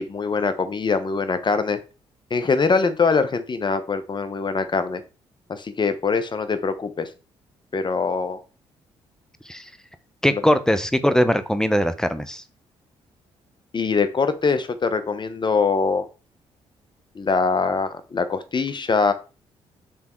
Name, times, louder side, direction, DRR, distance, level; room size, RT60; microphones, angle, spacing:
voice 1, 0.0-1.8 2.3-5.0 5.5-7.1 7.7-8.4 10.3-10.4 13.7-16.1 17.1-19.1, left 4 dB, 40° left, 11 dB, 1.0 m, -23 dB
voice 2, 10.2-12.4, equal, 5° left, 12 dB, 0.8 m, -20 dB
6.2 x 3.6 x 4.5 m, 0.32 s
supercardioid pair, 55°, 12 cm